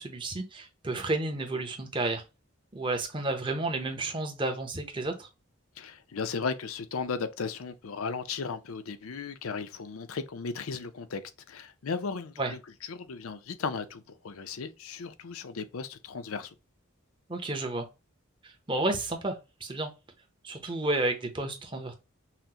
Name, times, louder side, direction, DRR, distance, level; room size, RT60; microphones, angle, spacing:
voice 1, 0.0-2.2 2.7-5.3 12.4-12.5 17.3-17.9 18.4-19.9 20.4-21.9, right 2 dB, 25° right, 0.7 m, -31 dB
voice 2, 5.8-11.2 11.5-12.6 12.9-16.5, left 5 dB, 85° left, 0.5 m, -36 dB
5.7 x 2.1 x 2.8 m
head